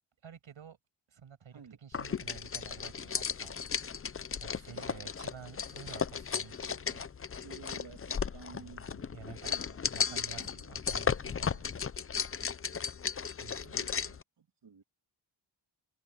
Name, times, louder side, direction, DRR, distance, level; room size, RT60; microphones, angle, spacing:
voice 1, 0.2-0.8 1.1-3.6 4.4-7.1 8.5-9.5 9.9-11.8 13.4-14.2, right 7 dB, 90° right, 6.3 m, -51 dB
sound 1, 1.9-14.2, left 6 dB, 30° left, 0.6 m, -35 dB
voice 2, 7.3-8.9 9.4-10.5 10.9-11.4 13.6-13.9 14.4-14.8, right 6 dB, 65° right, 2.7 m, -52 dB
cardioid pair, 70°, 46 cm